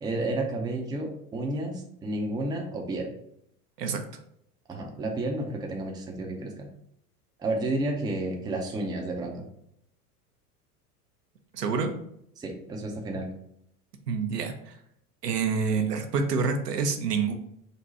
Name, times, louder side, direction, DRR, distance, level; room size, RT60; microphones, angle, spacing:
voice 1, 0.0-3.1 4.7-6.7 7.4-9.5 12.4-13.3, right 2 dB, 10° right, 1 dB, 0.5 m, -31 dB
voice 2, 11.5-11.9 14.1-14.7 15.2-17.3, right 5 dB, 85° right, 5 dB, 0.7 m, -27 dB
4.0 x 2.2 x 4.0 m, 0.73 s
hypercardioid pair, 90°, 47 cm